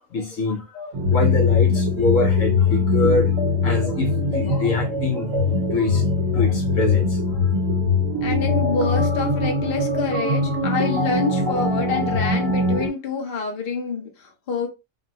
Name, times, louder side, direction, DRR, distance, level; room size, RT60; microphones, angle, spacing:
voice 1, 0.1-3.3 3.6-6.0 6.3-7.6, left 2 dB, 70° left, 1.2 m, -25 dB
sound 1, 0.9-12.9, left 3 dB, 75° right, 1.3 m, -21 dB
voice 2, 8.2-14.7, left 4 dB, 45° left, 1.1 m, -27 dB
5.4 x 2.2 x 2.8 m
omnidirectional pair, 1.4 m